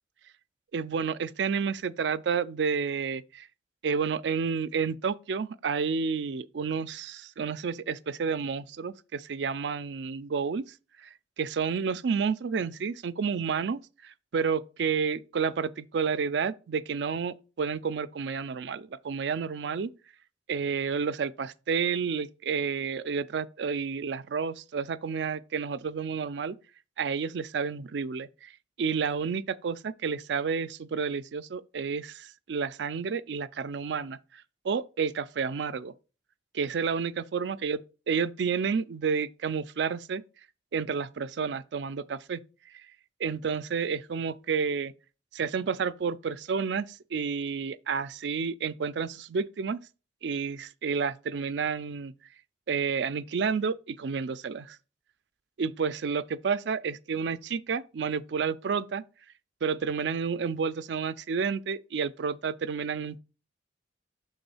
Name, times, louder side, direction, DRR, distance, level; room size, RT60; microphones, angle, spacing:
voice 1, 0.7-3.5 3.8-10.6 11.0-11.1 11.4-19.9 20.5-26.6 27.0-28.5 28.8-35.9 36.5-37.8 38.1-40.2 40.7-42.4 42.7-42.8 43.2-44.9 45.3-49.8 50.2-52.1 52.7-54.8 55.6-59.0 59.6-63.2, right 5 dB, 65° right, 0.4 m, -30 dB
6.1 x 3.6 x 5.5 m
head